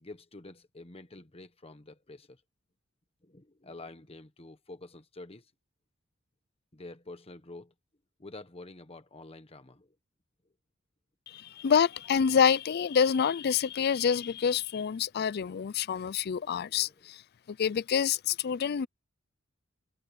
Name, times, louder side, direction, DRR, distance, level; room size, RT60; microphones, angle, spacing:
voice 1, 0.0-2.4 3.2-5.5 6.7-7.7 8.2-9.9 16.6-17.1, left 2 dB, 30° left, 1.2 m, -48 dB
voice 2, 11.3-17.2 17.5-18.9, left 7 dB, 50° left, 0.4 m, -27 dB
head